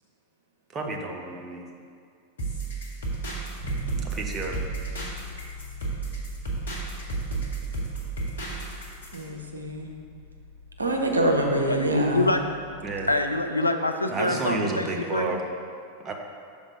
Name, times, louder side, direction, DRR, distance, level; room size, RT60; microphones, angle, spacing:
voice 1, 0.7-1.6 4.1-4.6 12.8-13.1 14.1-15.4 16.0-16.1, right 3 dB, 25° right, 1 dB, 0.7 m, -30 dB
sound 1, 2.4-9.2, right 3 dB, 65° left, 1.3 m, -32 dB
Bass guitar, 3.6-13.4, left 2 dB, 55° right, 1.1 m, -43 dB
voice 2, 9.1-9.9 10.8-12.3, right 1 dB, 80° right, 1 dB, 0.6 m, -25 dB
voice 3, 11.7-12.4 13.1-15.4, left 2 dB, 85° left, 6 dB, 0.4 m, -25 dB
6.1 x 3.6 x 4.9 m, 2.3 s
figure-of-eight pair, 90°, 0 cm